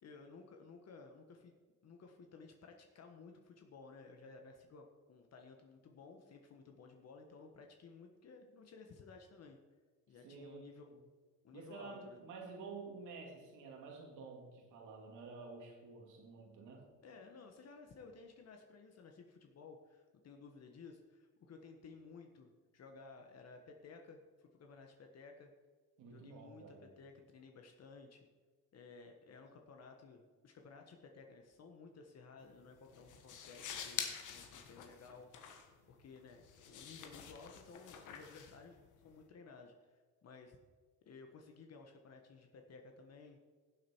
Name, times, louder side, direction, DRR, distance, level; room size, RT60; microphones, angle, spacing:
voice 1, 0.0-1.5 1.8-9.6 10.1-10.9 11.4-12.2 17.0-25.5 26.1-28.3 28.7-35.3 35.9-40.0 40.2-40.6 41.0-43.4, left 4 dB, 55° left, 4 dB, 1.3 m, -56 dB
voice 2, 10.2-10.7 11.5-16.9 26.0-26.9, right 4 dB, 90° right, 1 dB, 2.7 m, -50 dB
sound 1, 32.4-39.2, left 8 dB, 80° left, 1.5 m, -48 dB
15.5 x 7.9 x 4.5 m, 1.4 s
cardioid pair, 90°, 30 cm